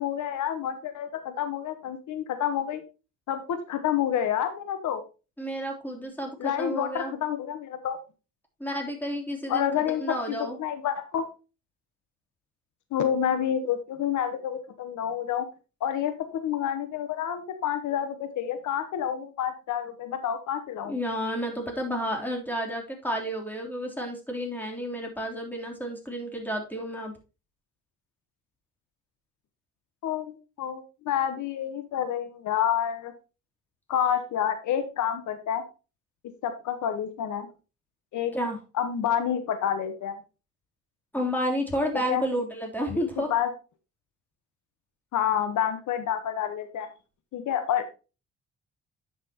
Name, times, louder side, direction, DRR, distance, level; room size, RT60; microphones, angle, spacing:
voice 1, 0.0-2.8 3.3-5.0 6.4-8.0 9.5-11.2 12.9-15.5 15.8-20.9 30.0-33.1 33.9-35.6 36.4-37.5 38.1-38.3 38.7-40.2 41.9-42.2 42.9-43.0 43.3-43.5 45.1-46.9 47.3-47.8, left 9 dB, 75° left, 9 dB, 1.2 m, -28 dB
voice 2, 5.4-7.1 8.6-10.6 20.9-27.1 38.3-38.6 41.1-43.3, equal, 5° left, 1 dB, 3.3 m, -31 dB
10.0 x 6.1 x 2.9 m, 0.30 s
cardioid pair, 90°, 30 cm